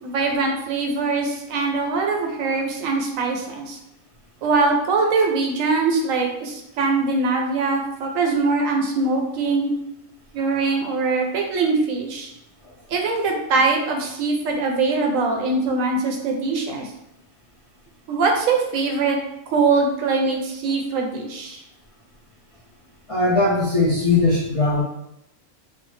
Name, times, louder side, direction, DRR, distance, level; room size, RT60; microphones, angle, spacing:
voice 1, 0.0-3.8 4.4-9.7 10.3-12.3 12.9-16.9 18.1-19.2 19.5-21.6, right 3 dB, 75° right, 2 dB, 0.9 m, -22 dB
voice 2, 23.1-24.8, left 3 dB, 55° left, -7 dB, 0.3 m, -19 dB
3.2 x 2.1 x 3.1 m, 0.84 s
omnidirectional pair, 1.5 m